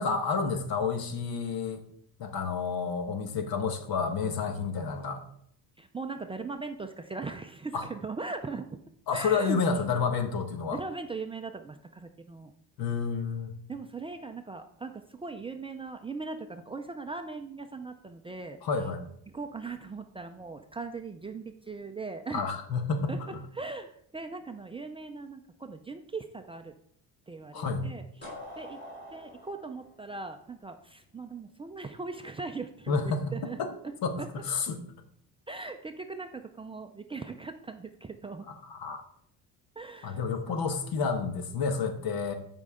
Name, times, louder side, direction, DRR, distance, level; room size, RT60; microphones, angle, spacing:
voice 1, 0.0-1.8 2.2-5.2 7.7-7.9 9.1-10.8 12.8-13.5 18.6-19.0 22.3-23.1 27.5-27.9 32.9-33.3 33.6-33.7 34.0-34.8 38.5-39.0 40.0-42.3, left 5 dB, 65° left, 7 dB, 1.3 m, -30 dB
voice 2, 5.8-8.7 9.1-9.6 10.7-12.5 13.7-18.6 19.3-22.5 23.1-23.2 23.5-26.7 27.3-28.3 28.6-28.8 29.1-33.6 33.8-33.9 34.2-34.3 35.5-38.5 39.8-40.2 40.5-40.7, right 3 dB, 15° right, 5 dB, 0.4 m, -39 dB
sound 1, 28.2-31.0, left 1 dB, 25° left, 4.5 m, -45 dB
14.5 x 5.3 x 3.6 m, 0.67 s
cardioid pair, 140°, 38 cm